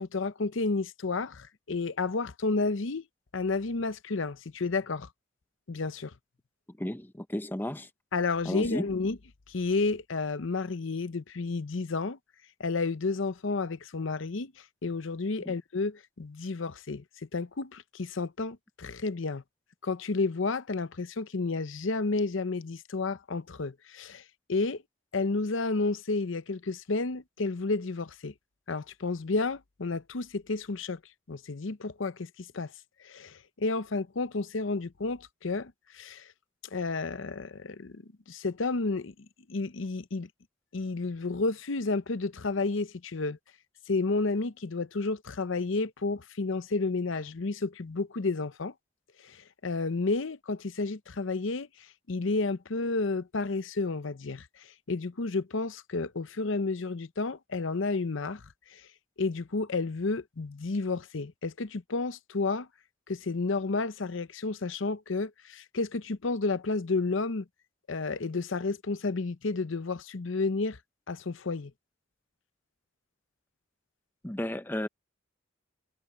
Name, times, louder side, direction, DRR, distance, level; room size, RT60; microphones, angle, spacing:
voice 1, 0.0-3.0 3.3-5.1 5.7-6.1 8.1-9.2 9.5-12.2 12.6-17.0 17.3-19.4 19.8-24.2 24.5-24.8 25.1-28.3 28.7-31.0 31.3-32.7 33.0-36.3 36.7-38.0 38.3-39.1 39.5-40.3 40.7-43.4 43.9-48.7 49.2-58.4 58.7-58.9 59.2-62.7 63.1-67.5 67.9-70.8 71.1-71.7, left 3 dB, 65° left, 0.7 m, -31 dB
voice 2, 6.8-7.9 8.4-8.8 15.4-15.5 74.2-74.9, left 1 dB, 10° left, 0.7 m, -33 dB
head